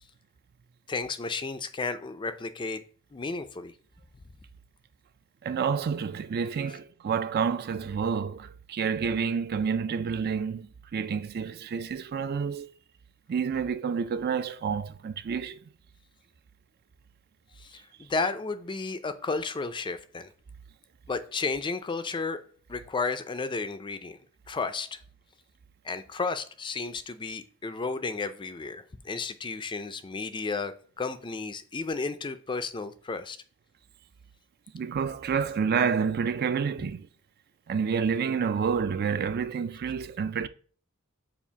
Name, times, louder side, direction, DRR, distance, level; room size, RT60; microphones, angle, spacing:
voice 1, 0.9-2.8 3.1-3.7 17.6-20.3 21.1-22.4 22.7-24.2 24.5-25.0 25.8-33.4, left 4 dB, 20° left, 0.4 m, -33 dB
voice 2, 5.4-12.7 13.3-15.6 34.7-37.1 37.7-40.5, right 6 dB, 45° right, 0.3 m, -29 dB
7.1 x 2.4 x 5.6 m
head